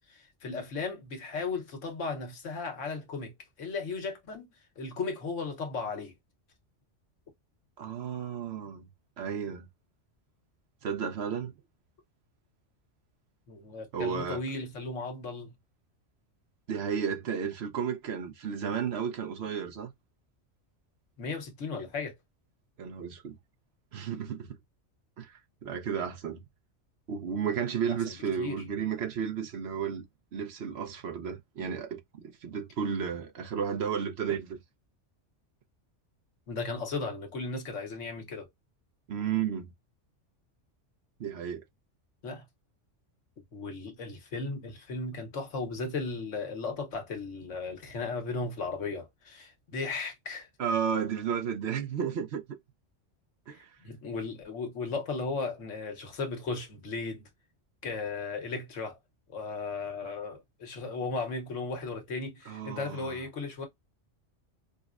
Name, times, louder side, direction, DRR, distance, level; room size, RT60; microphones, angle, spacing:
voice 1, 0.1-3.3 3.6-4.5 4.8-6.1 13.5-15.5 21.2-22.1 27.8-28.6 36.5-38.5 42.2-42.4 43.5-50.5 53.5-57.2 57.8-59.0 59.3-63.7, left 4 dB, 80° left, 1.3 m, -36 dB
voice 2, 7.8-8.9 9.2-9.7 10.8-11.5 13.9-14.4 16.7-19.9 22.8-23.4 23.9-24.6 25.2-26.4 27.1-30.1 30.3-34.6 39.1-39.7 41.2-41.6 50.6-52.6 53.5-53.7 62.5-63.2, right 7 dB, 65° right, 0.9 m, -33 dB
5.0 x 2.1 x 2.4 m
omnidirectional pair, 1.2 m